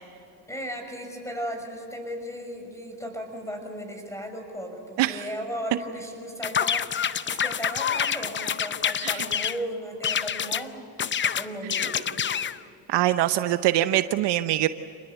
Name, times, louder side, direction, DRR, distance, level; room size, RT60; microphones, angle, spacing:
voice 1, 0.5-6.9 7.3-10.9 11.2-12.1, equal, 5° left, 4 dB, 6.3 m, -36 dB
sound 1, 6.4-9.6 10.0-10.6 11.0-12.6, left 8 dB, 25° left, 0.6 m, -27 dB
voice 2, 12.9-14.7, right 14 dB, 60° right, 11 dB, 0.9 m, -23 dB
27.5 x 20.5 x 8.1 m, 2.7 s
supercardioid pair, 90°, 46 cm